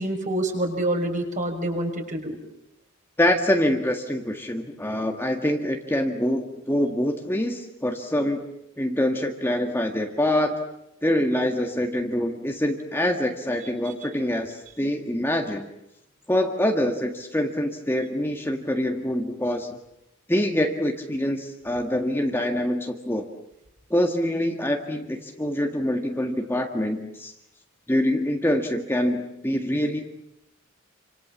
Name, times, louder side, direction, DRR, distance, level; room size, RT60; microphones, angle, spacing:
voice 1, 0.0-2.4, right 1 dB, 40° right, 3 dB, 6.0 m, -27 dB
voice 2, 3.2-8.4 8.8-10.6 11.0-15.7 16.3-19.8 20.3-23.3 23.9-27.3 27.9-30.1, left 1 dB, 10° left, 3 dB, 1.8 m, -25 dB
28.5 x 26.5 x 7.4 m, 0.84 s
head